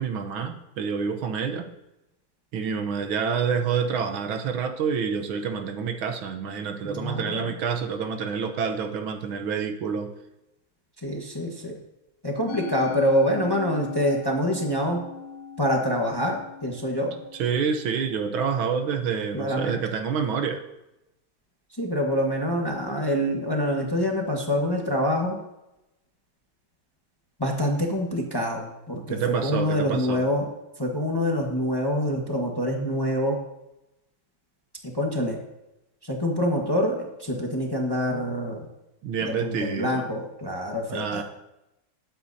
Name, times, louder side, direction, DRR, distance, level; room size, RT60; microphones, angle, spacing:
voice 1, 0.0-1.7 2.5-10.1 17.4-20.6 29.1-30.2 39.0-40.0 40.9-41.2, right 6 dB, 75° right, 6 dB, 1.7 m, -28 dB
voice 2, 6.8-7.5 11.0-11.8 12.2-15.0 15.6-17.2 19.3-19.8 21.8-25.4 27.4-30.5 30.8-33.4 34.9-35.4 36.0-38.7 39.2-41.2, equal, 15° left, 0 dB, 1.1 m, -26 dB
Musical instrument, 12.5-18.9, left 6 dB, 85° left, 1.6 m, -39 dB
20.0 x 8.5 x 2.7 m, 0.93 s
omnidirectional pair, 2.3 m